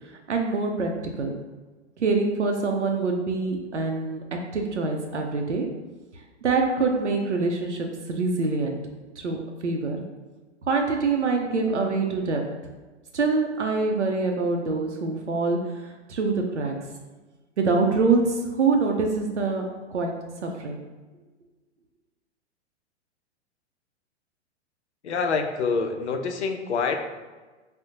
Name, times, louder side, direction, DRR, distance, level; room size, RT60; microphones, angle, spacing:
voice 1, 0.3-1.3 2.0-5.7 6.4-8.8 9.2-10.0 10.7-12.5 13.1-16.7 17.6-20.9, right 4 dB, 85° right, 2 dB, 0.5 m, -25 dB
voice 2, 25.0-27.0, left 5 dB, 75° left, 5 dB, 0.5 m, -26 dB
3.7 x 2.0 x 2.7 m, 1.3 s
figure-of-eight pair, 105°, 34 cm